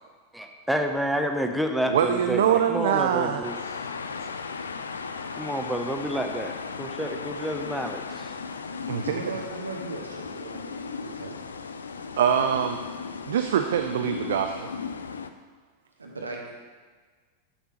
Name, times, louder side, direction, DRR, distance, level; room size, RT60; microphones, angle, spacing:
voice 1, 0.3-3.6 5.4-6.5 6.8-8.3, equal, ahead, 4 dB, 0.5 m, -29 dB
voice 2, 1.9-3.7 8.9-9.0 12.2-12.8 13.3-14.7, right 9 dB, 60° right, 7 dB, 0.3 m, -24 dB
sound 1, 3.4-15.3, left 5 dB, 70° left, 0.3 m, -36 dB
voice 3, 9.0-11.5 16.0-16.5, right 3 dB, 75° right, 0 dB, 1.1 m, -37 dB
7.4 x 6.6 x 2.9 m, 1.5 s
figure-of-eight pair, 90°, 0 cm